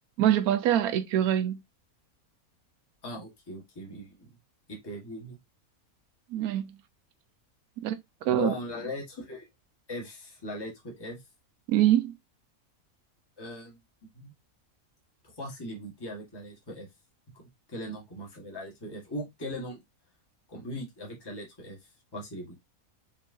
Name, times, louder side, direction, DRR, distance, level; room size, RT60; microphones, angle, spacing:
voice 1, 0.2-1.6 6.3-6.7 7.8-8.0 8.2-8.5 11.7-12.1, right 11 dB, 85° right, 1.1 m, -24 dB
voice 2, 3.0-4.3 4.7-5.4 8.2-9.5 9.9-11.2 13.4-14.3 15.2-16.9 17.3-19.8 20.5-22.6, left 1 dB, 15° left, 1.5 m, -39 dB
5.3 x 3.1 x 2.7 m
omnidirectional pair, 1.5 m